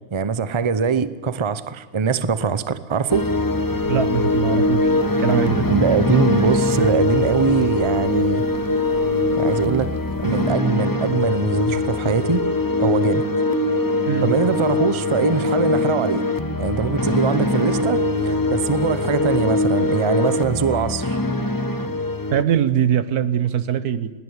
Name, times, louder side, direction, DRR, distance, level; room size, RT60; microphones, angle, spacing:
voice 1, 0.1-3.2 5.7-8.4 9.4-12.4 12.8-13.2 14.2-16.2 16.6-21.2, right 5 dB, 25° right, 0.7 m, -22 dB
sound 1, 3.1-22.4, left 2 dB, 15° left, 1.0 m, -22 dB
voice 2, 3.9-4.9 5.2-5.7 14.1-14.3 22.3-24.1, right 9 dB, 90° right, 1.6 m, -21 dB
sound 2, 8.6-9.9 10.3-16.4 16.6-18.2, right 1 dB, 40° right, 4.4 m, -31 dB
20.5 x 18.0 x 9.6 m
omnidirectional pair, 1.6 m